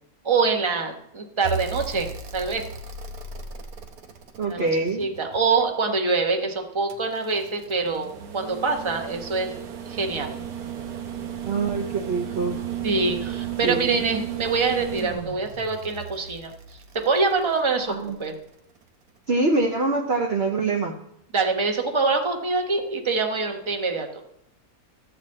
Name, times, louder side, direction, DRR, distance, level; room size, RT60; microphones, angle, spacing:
voice 1, 0.2-2.7 4.5-4.7 5.0-10.4 12.8-16.5 16.9-17.9 18.2-18.3 21.3-24.2, right 4 dB, 20° right, 4 dB, 1.0 m, -25 dB
sound 1, 1.4-5.6 6.9-18.1 19.6-19.7, right 9 dB, 85° right, 1.4 m, -35 dB
voice 2, 4.4-5.1 11.4-12.6 13.6-14.0 17.9-18.2 19.3-20.9, right 3 dB, 50° right, 2 dB, 0.9 m, -24 dB
13.0 x 4.3 x 7.6 m, 0.78 s
omnidirectional pair, 1.6 m